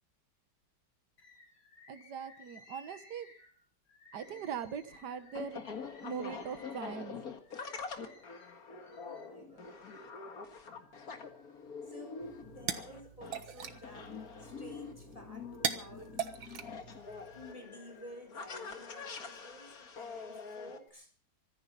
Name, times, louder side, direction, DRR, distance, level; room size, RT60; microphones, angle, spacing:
Bird, 1.2-10.1 10.6-11.6 12.1-13.2 13.6-15.0 15.5-19.7 20.4-20.9, left 3 dB, 80° left, 4.3 m, -60 dB
voice 1, 1.9-3.3 4.1-5.6 6.0-7.2, right 7 dB, 60° right, 11 dB, 1.7 m, -41 dB
sound 1, 4.1-20.8, left 5 dB, 50° left, 2.1 m, -45 dB
voice 2, 9.0-9.9 11.8-14.1 14.4-16.2 17.3-21.1, equal, 15° left, 6 dB, 3.8 m, -52 dB
sound 2, 12.2-17.5, right 8 dB, 90° right, 2.1 m, -41 dB
24.5 x 10.5 x 5.5 m, 0.43 s
omnidirectional pair, 2.1 m